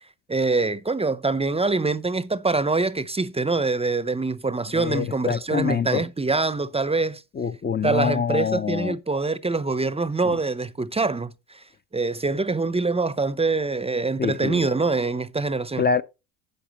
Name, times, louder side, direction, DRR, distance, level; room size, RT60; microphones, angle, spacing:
voice 1, 0.3-7.2 7.8-11.6 11.9-15.9, right 3 dB, 15° right, 0.6 m, -24 dB
voice 2, 4.7-6.0 7.4-8.9 10.3-10.4 14.2-14.6 15.8-16.0, left 6 dB, 25° left, 0.6 m, -25 dB
12.0 x 8.1 x 3.0 m
supercardioid pair, 85°, 44 cm